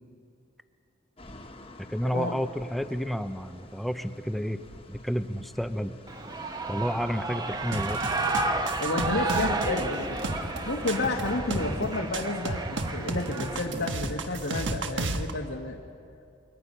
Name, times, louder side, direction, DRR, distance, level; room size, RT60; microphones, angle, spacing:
sound 1, 1.2-14.4, left 1 dB, 30° left, 1.4 m, -45 dB
voice 1, 1.8-4.6 4.9-6.0 6.7-8.0, equal, ahead, 10 dB, 0.6 m, -30 dB
Shout / Cheering, 6.1-13.8, right 2 dB, 20° right, 1.1 m, -32 dB
sound 2, 7.7-15.3, right 2 dB, 70° right, 1.4 m, -33 dB
voice 2, 8.8-10.2 10.6-15.8, left 2 dB, 85° left, -2 dB, 1.6 m, -31 dB
27.5 x 23.0 x 5.6 m, 2.5 s
head